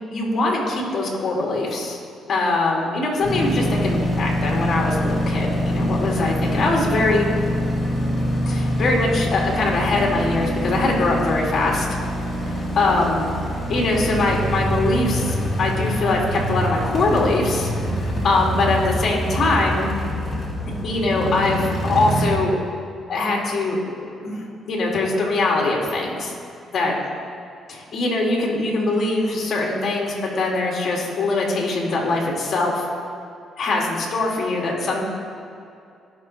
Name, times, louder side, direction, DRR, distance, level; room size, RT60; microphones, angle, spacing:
voice 1, 0.1-2.0 2.3-7.3 8.5-11.9 12.5-13.3 13.7-17.7 18.0-19.9 20.8-22.6 23.1-26.3 26.7-27.0 27.9-32.9 33.6-35.0, left 2 dB, 55° left, -2 dB, 2.3 m, -22 dB
sound 1, 3.2-22.3, equal, 30° left, 2.5 m, -25 dB
16.5 x 6.2 x 3.2 m, 2.5 s
cardioid pair, 90°, 0 cm